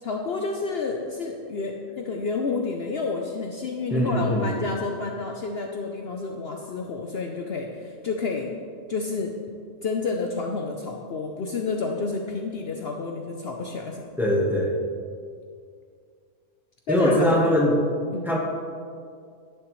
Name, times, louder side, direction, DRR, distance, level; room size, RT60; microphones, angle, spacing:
voice 1, 0.0-8.5 8.9-9.4 9.8-14.4 16.9-17.4 18.1-18.3, left 4 dB, 55° left, 2 dB, 0.8 m, -30 dB
voice 2, 3.9-4.5 14.2-14.7 16.9-17.8 18.2-18.4, equal, ahead, -2 dB, 1.2 m, -21 dB
11.0 x 9.7 x 3.1 m, 2.3 s
omnidirectional pair, 1.3 m